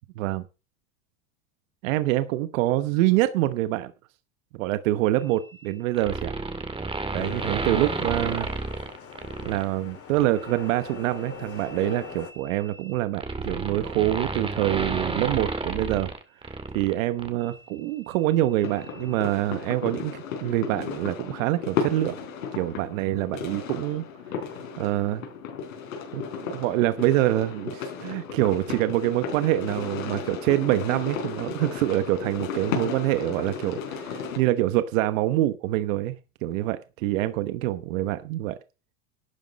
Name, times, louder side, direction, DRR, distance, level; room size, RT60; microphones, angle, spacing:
voice 1, 1.8-3.9 4.6-6.3 7.1-8.5 9.4-16.1 16.7-22.2 22.6-24.0 24.8-25.3 26.1-36.1 36.4-38.6, right 15 dB, 75° right, 12 dB, 1.1 m, -25 dB
sound 1, 5.9-9.6 10.1-10.4 11.6-16.9 17.2-17.3, right 3 dB, 15° right, 2.2 m, -31 dB
sound 2, 7.1-12.3, left 6 dB, 35° left, 3.6 m, -42 dB
sound 3, 18.6-34.4, left 6 dB, 90° left, 4.4 m, -34 dB
12.0 x 9.3 x 5.3 m, 0.31 s
supercardioid pair, 110°, 40 cm